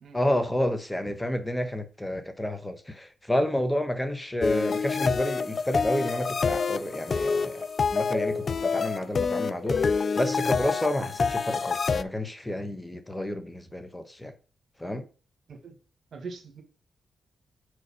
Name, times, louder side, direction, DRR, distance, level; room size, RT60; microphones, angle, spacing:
voice 1, 0.1-7.7 7.9-14.3 14.8-15.1, left 1 dB, 10° left, 1.1 m, -30 dB
sound 1, 4.4-12.0, left 5 dB, 55° left, 0.4 m, -27 dB
sound 2, 8.1-11.8 12.4-12.5 12.7-12.8, right 1 dB, 40° right, 1.4 m, -45 dB
voice 2, 16.1-16.6, right 4 dB, 65° right, 1.5 m, -41 dB
4.6 x 4.2 x 5.5 m
supercardioid pair, 45°, 0 cm